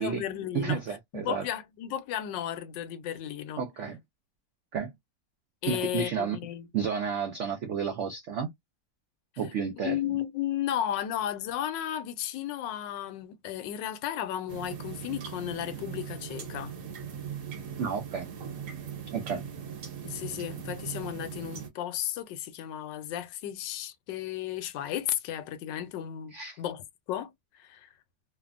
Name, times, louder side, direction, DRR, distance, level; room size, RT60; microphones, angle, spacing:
voice 1, 0.0-0.8 1.1-3.6 5.6-6.7 9.8-16.7 20.0-27.3 27.6-27.9, left 11 dB, 80° left, 1.2 m, -34 dB
voice 2, 0.5-1.4 3.6-4.0 4.7-4.9 5.7-6.4 6.7-8.5 9.4-10.0 17.8-18.3 19.1-19.4 26.3-26.6, right 6 dB, 85° right, 0.6 m, -31 dB
sound 1, 14.5-21.7, right 7 dB, 65° right, 1.5 m, -40 dB
3.3 x 2.1 x 2.3 m
omnidirectional pair, 2.0 m